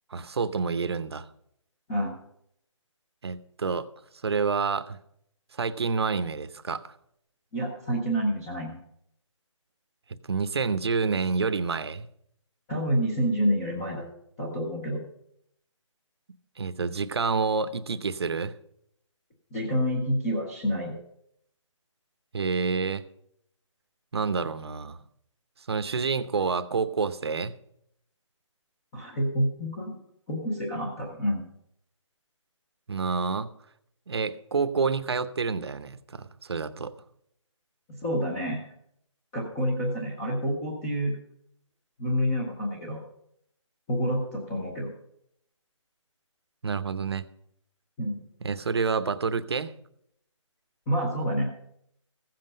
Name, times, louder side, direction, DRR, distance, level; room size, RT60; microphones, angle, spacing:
voice 1, 0.1-1.3 3.2-3.9 4.2-5.0 5.6-6.9 10.2-12.1 16.6-18.5 22.3-23.0 24.1-25.0 25.7-27.5 32.9-33.5 34.1-36.9 46.6-47.3 48.4-49.7, right 5 dB, 55° right, 12 dB, 0.8 m, -28 dB
voice 2, 7.5-8.8 12.7-14.0 14.4-15.0 19.5-20.9 28.9-30.0 30.3-31.4 38.0-38.6 39.3-41.1 42.0-43.0 43.9-44.9 48.0-48.2 50.9-51.5, equal, 5° left, -4 dB, 0.6 m, -28 dB
15.5 x 7.7 x 5.4 m, 0.72 s
hypercardioid pair, 175°, 16 cm